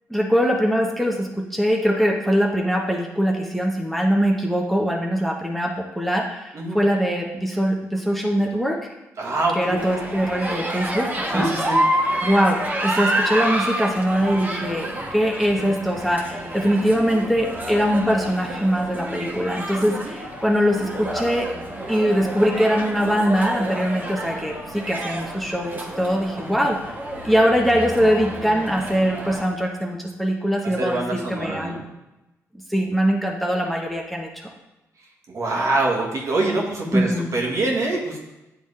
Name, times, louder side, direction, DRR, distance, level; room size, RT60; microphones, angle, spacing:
voice 1, 0.1-8.8 9.6-11.5 12.2-21.5 21.9-26.9 27.2-31.8 32.7-34.5 36.9-37.3, equal, ahead, 0 dB, 0.9 m, -22 dB
voice 2, 9.2-9.8 11.3-11.8 26.5-26.6 30.8-31.8 35.3-38.2, right 2 dB, 60° right, -2 dB, 1.6 m, -24 dB
sound 1, 9.8-29.5, right 1 dB, 30° right, 1.4 m, -29 dB
8.6 x 3.6 x 3.3 m, 0.97 s
supercardioid pair, 60°, 6 cm